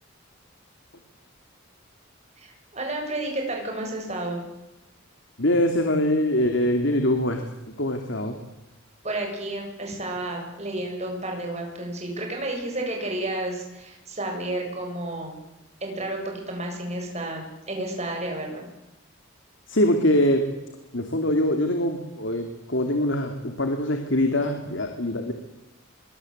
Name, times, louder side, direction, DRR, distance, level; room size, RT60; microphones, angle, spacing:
voice 1, 2.4-4.4 9.0-15.4 15.8-18.7, right 1 dB, 30° right, 2 dB, 7.6 m, -31 dB
voice 2, 5.4-7.4 7.7-8.3 19.7-20.4 20.9-25.3, left 1 dB, 65° left, 5 dB, 2.8 m, -23 dB
24.5 x 23.5 x 8.1 m, 0.97 s
head